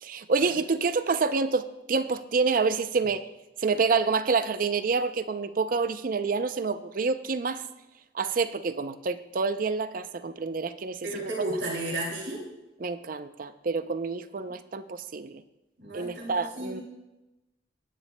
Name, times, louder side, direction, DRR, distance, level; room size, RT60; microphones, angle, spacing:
voice 1, 0.0-3.3 3.6-7.6 8.1-11.1 12.8-15.4 15.9-16.8, right 4 dB, 50° right, 11 dB, 0.5 m, -28 dB
voice 2, 11.0-12.4 14.5-14.6 15.8-16.8, right 1 dB, 75° right, -2 dB, 2.4 m, -33 dB
16.5 x 10.0 x 2.2 m, 1.0 s
head